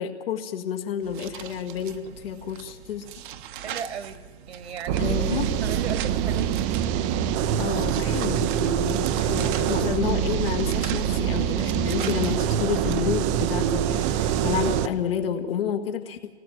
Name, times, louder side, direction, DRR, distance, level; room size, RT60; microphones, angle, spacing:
voice 1, 0.0-3.0 5.0-5.5 7.6-16.3, left 8 dB, 55° left, 4 dB, 1.9 m, -30 dB
sound 1, 1.0-13.0, right 10 dB, 45° right, 1.2 m, -40 dB
voice 2, 3.6-6.9, right 7 dB, 70° right, 11 dB, 2.1 m, -37 dB
sound 2, 4.9-14.9, right 9 dB, 25° right, 0.8 m, -25 dB
26.0 x 19.0 x 7.8 m, 1.3 s
hypercardioid pair, 130°, 35 cm